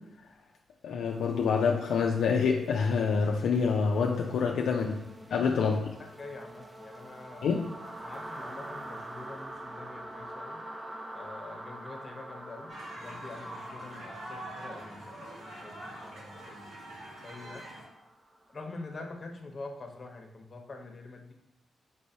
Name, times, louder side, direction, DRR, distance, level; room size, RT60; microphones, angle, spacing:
voice 1, 0.8-5.0 5.3-5.8 7.4-7.6, left 5 dB, 85° left, 0 dB, 0.3 m, -26 dB
sound 1, 1.2-19.0, right 1 dB, 20° right, 0.5 m, -46 dB
voice 2, 6.2-7.5 7.8-10.6 11.1-12.7 12.9-17.6 18.5-21.3, left 3 dB, 45° left, 3 dB, 0.8 m, -45 dB
sound 2, 12.7-17.9, right 1 dB, 85° right, 1.5 m, -44 dB
5.2 x 3.2 x 2.7 m, 0.94 s
cardioid pair, 60°, 0 cm